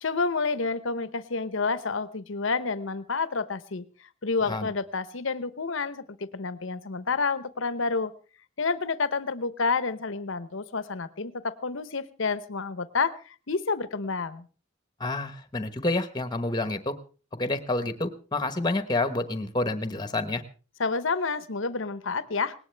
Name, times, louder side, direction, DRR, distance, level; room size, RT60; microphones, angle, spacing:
voice 1, 0.0-3.8 4.2-8.1 8.6-14.5 20.8-22.5, left 4 dB, 60° left, 15 dB, 0.8 m, -29 dB
voice 2, 15.0-16.9 17.4-20.4, left 2 dB, 20° left, 11 dB, 1.0 m, -28 dB
19.0 x 18.0 x 3.4 m, 0.36 s
head